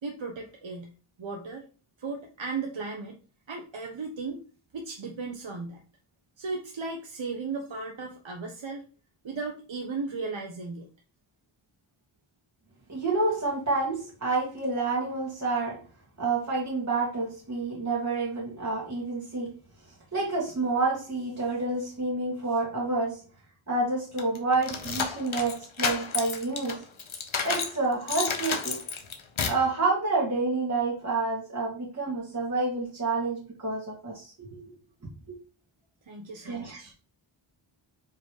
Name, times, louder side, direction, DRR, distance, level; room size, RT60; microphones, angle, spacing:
voice 1, 0.0-0.9 1.2-1.7 2.0-3.2 3.5-4.4 4.7-5.8 6.4-8.8 9.2-10.9 36.0-36.9, right 4 dB, 65° right, 1.1 m, -36 dB
voice 2, 12.9-15.8 16.2-19.6 20.1-23.2 23.7-26.8 27.4-28.8 29.5-34.7 35.3-35.4 36.4-36.8, right 3 dB, 35° right, 2.1 m, -29 dB
sound 1, 24.2-27.8 28.1-29.7, left 5 dB, 70° left, 1.3 m, -31 dB
5.2 x 5.0 x 4.8 m
wide cardioid pair, 90°, 50 cm